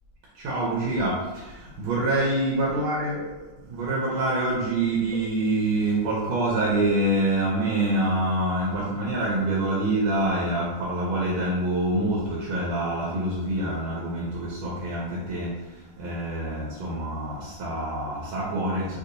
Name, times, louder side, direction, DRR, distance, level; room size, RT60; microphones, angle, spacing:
voice 1, 0.3-19.0, right 1 dB, 85° right, -5 dB, 1.5 m, -26 dB
3.5 x 2.7 x 2.5 m, 1.1 s
omnidirectional pair, 2.2 m